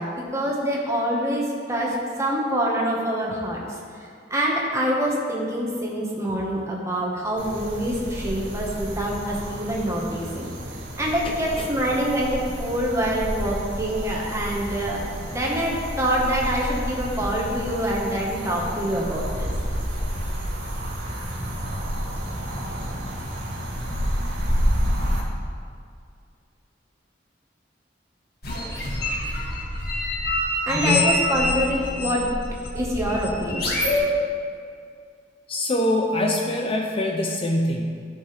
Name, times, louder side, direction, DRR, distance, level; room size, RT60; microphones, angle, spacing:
voice 1, 0.0-3.6 4.3-10.5 11.0-15.0 15.3-19.5 30.7-32.2 32.7-33.7, equal, 15° right, -3 dB, 1.5 m, -25 dB
sound 1, 7.4-25.2, equal, 90° right, 2.0 m, -30 dB
voice 2, 11.2-11.7 30.7-31.0 35.5-37.9, left 1 dB, 30° left, 1 dB, 0.6 m, -24 dB
sound 2, 28.4-34.0, left 1 dB, 55° left, 1.8 m, -26 dB
15.0 x 5.3 x 3.4 m, 2.2 s
head